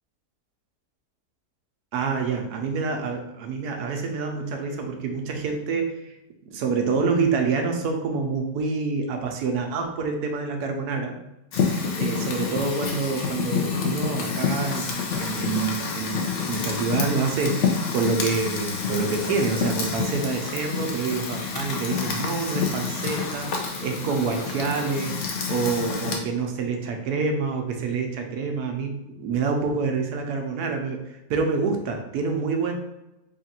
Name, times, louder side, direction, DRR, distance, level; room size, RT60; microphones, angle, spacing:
voice 1, 1.9-6.1 6.5-11.1 12.0-25.1 25.5-31.0 31.3-32.7, right 4 dB, 85° right, 3 dB, 1.2 m, -27 dB
Fire, 11.5-26.2, left 5 dB, 60° left, 0.8 m, -28 dB
3.7 x 2.4 x 4.1 m, 0.96 s
omnidirectional pair, 1.6 m